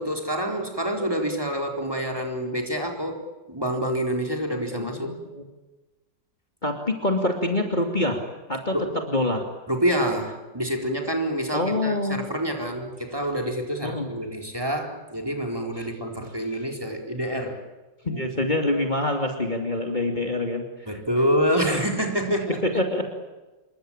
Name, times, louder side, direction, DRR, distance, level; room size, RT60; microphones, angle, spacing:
voice 1, 0.0-5.1 8.7-8.9 9.7-17.6 18.1-18.2 20.9-22.6, equal, 10° right, 3 dB, 4.2 m, -27 dB
voice 2, 4.7-5.4 6.6-8.2 8.5-9.4 11.5-12.2 13.8-14.1 15.8-15.9 18.0-21.0 22.6-23.1, left 1 dB, 25° left, 3 dB, 2.8 m, -26 dB
28.0 x 23.5 x 8.9 m, 1.2 s
omnidirectional pair, 1.9 m